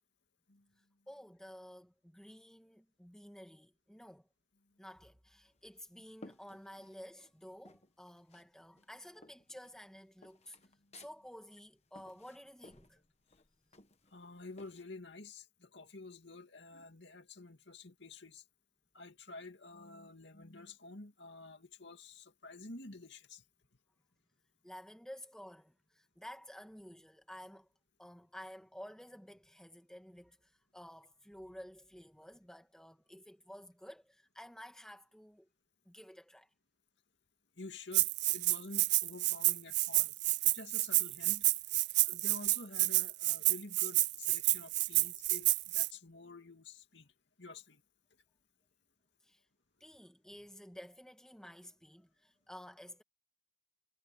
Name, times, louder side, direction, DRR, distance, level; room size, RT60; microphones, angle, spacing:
voice 1, 1.1-4.3 4.8-10.6 11.0-13.0 24.6-27.7 28.0-35.5 35.9-36.5 49.2-49.4 49.8-53.0, equal, 5° left, 1.7 m, -52 dB
sound 1, 5.5-7.3 7.6-8.5 8.8-14.8, left 2 dB, 35° left, 1.3 m, -59 dB
voice 2, 14.1-18.4 18.9-23.4 37.6-40.1 40.4-41.5 42.0-47.1 47.4-47.8, left 3 dB, 65° left, 2.5 m, -50 dB
Rattle (instrument), 37.9-45.9, right 20 dB, 55° right, 0.4 m, -30 dB
head